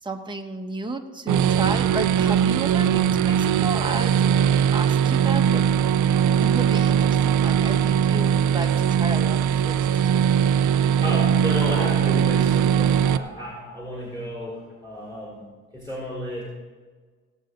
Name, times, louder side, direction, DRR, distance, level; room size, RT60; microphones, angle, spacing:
voice 1, 0.0-5.7 6.4-9.8 10.1-10.2, right 2 dB, 15° right, 3 dB, 1.3 m, -33 dB
sound 1, 1.3-13.2, right 8 dB, 75° right, 0.6 m, -20 dB
voice 2, 11.0-15.4 15.7-16.4, equal, 10° left, -6 dB, 4.5 m, -32 dB
18.0 x 8.3 x 3.9 m, 1.4 s
cardioid pair, 90°, 30 cm